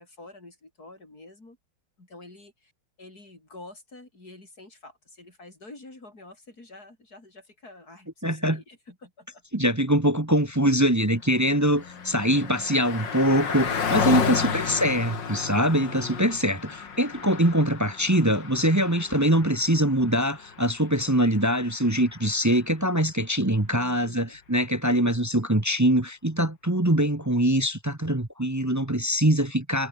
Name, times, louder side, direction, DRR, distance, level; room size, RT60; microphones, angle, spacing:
voice 1, 0.0-1.6 2.0-2.7 3.0-9.4 23.7-24.4, left 2 dB, 45° left, 6.5 m, -48 dB
voice 2, 8.2-8.6 9.5-29.9, equal, 15° right, 0.8 m, -23 dB
Car passing by, 11.0-22.7, left 6 dB, 60° left, 2.8 m, -33 dB
omnidirectional pair, 2.2 m